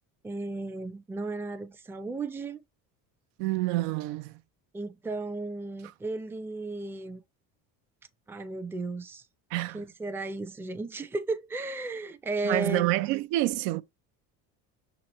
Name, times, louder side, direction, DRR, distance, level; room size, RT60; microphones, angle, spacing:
voice 1, 0.2-2.6 4.7-7.2 8.3-9.2 9.7-12.9, right 2 dB, 5° right, 0.4 m, -34 dB
voice 2, 3.4-4.3 9.5-9.8 12.4-13.8, right 17 dB, 75° right, 0.6 m, -27 dB
5.9 x 3.0 x 3.0 m
supercardioid pair, 90°, 45 cm